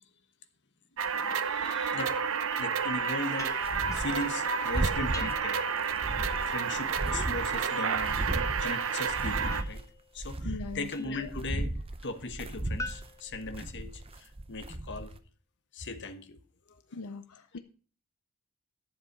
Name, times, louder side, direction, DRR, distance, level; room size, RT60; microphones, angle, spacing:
sound 1, 1.0-9.6, right 6 dB, 65° right, 0.8 m, -30 dB
voice 1, 1.4-3.5 3.9-5.6 6.5-8.2 8.6-9.8 10.1-15.2 15.7-16.4 16.9-17.0, left 2 dB, 55° left, 1.2 m, -38 dB
sound 2, 3.4-5.8 9.5-11.4 12.8-14.2, left 2 dB, 15° left, 0.6 m, -46 dB
sound 3, 3.4-4.3 4.6-5.4 5.8-7.7 7.9-9.9 10.2-15.1, right 1 dB, 25° right, 0.7 m, -35 dB
voice 2, 10.4-10.9 16.9-17.6, left 3 dB, 80° left, 0.7 m, -40 dB
11.5 x 7.3 x 5.4 m
head